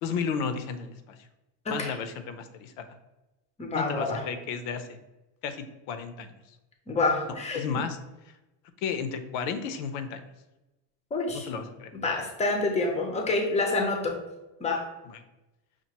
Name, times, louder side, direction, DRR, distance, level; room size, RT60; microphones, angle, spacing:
voice 1, 0.0-1.2 1.7-2.9 3.7-5.0 5.4-6.3 7.5-8.0 8.8-10.2 11.3-11.9 15.1-15.2, left 6 dB, 70° left, 9 dB, 0.7 m, -33 dB
voice 2, 3.6-4.2 6.9-7.6 11.1-11.5 11.9-14.2 14.6-14.8, left 3 dB, 15° left, 2 dB, 0.5 m, -27 dB
5.9 x 2.5 x 2.9 m, 1.0 s
cardioid pair, 140°, 48 cm